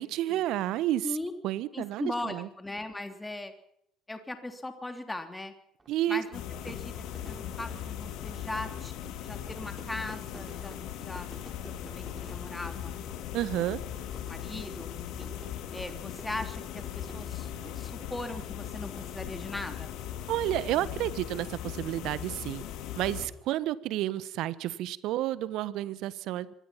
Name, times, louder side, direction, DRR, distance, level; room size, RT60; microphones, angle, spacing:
voice 1, 0.0-1.1 1.4-2.5 5.9-6.2 13.3-13.8 20.3-22.6 22.9-26.5, right 14 dB, 60° right, 17 dB, 1.3 m, -30 dB
voice 2, 1.7-3.5 4.1-5.5 6.1-6.9 7.3-8.9 9.2-10.7 11.0-11.3 11.6-12.9 14.3-15.3 15.7-19.9, left 2 dB, 15° left, 6 dB, 3.1 m, -39 dB
Fire / Fireworks, 5.8-19.8, right 3 dB, 20° right, 6.5 m, -54 dB
sound 1, 6.3-23.3, left 10 dB, 60° left, 3.0 m, -39 dB
25.5 x 20.0 x 5.9 m, 0.74 s
hypercardioid pair, 60°, 0 cm